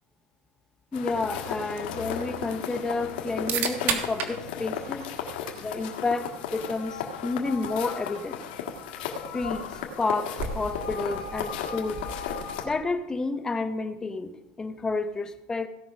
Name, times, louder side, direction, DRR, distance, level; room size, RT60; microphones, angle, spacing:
sound 1, 0.9-12.7, left 7 dB, 90° left, 1.8 m, -35 dB
voice 1, 0.9-5.0 5.6-8.4 9.3-9.6 10.0-12.0 12.6-15.7, left 3 dB, 15° left, 10 dB, 0.7 m, -30 dB
sound 2, 1.1-13.0, right 6 dB, 45° right, 1.4 m, -38 dB
17.0 x 5.8 x 5.1 m, 1.0 s
supercardioid pair, 150°, 5 cm